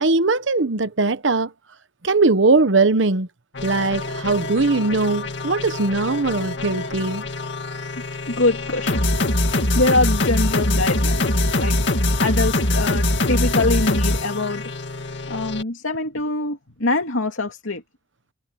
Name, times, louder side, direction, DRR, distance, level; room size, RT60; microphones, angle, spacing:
voice 1, 0.0-1.5 2.0-3.3 3.6-7.2, right 3 dB, 65° right, 1.0 m, -20 dB
sound 1, 3.6-15.6, left 2 dB, 60° left, 2.3 m, -23 dB
voice 2, 8.3-9.1 9.7-11.8 12.2-14.6 15.3-17.8, left 2 dB, 85° left, 2.7 m, -24 dB
head